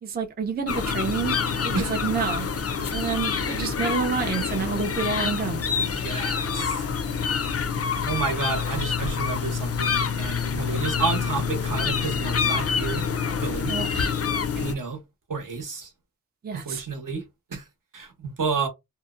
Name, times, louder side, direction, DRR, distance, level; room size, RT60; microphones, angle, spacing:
voice 1, 0.0-1.4 1.6-2.5 2.9-5.6 13.7-14.1 16.4-16.8, right 5 dB, 25° right, 0.4 m, -28 dB
sound 1, 0.7-14.7, left 6 dB, 40° left, 0.4 m, -27 dB
voice 2, 5.9-6.8 8.1-13.1 13.4-13.7 14.5-15.0 15.3-15.9 16.6-17.2 17.5-17.6 17.9-18.7, right 5 dB, 60° right, 0.9 m, -30 dB
2.7 x 2.1 x 2.3 m
wide cardioid pair, 90°, 36 cm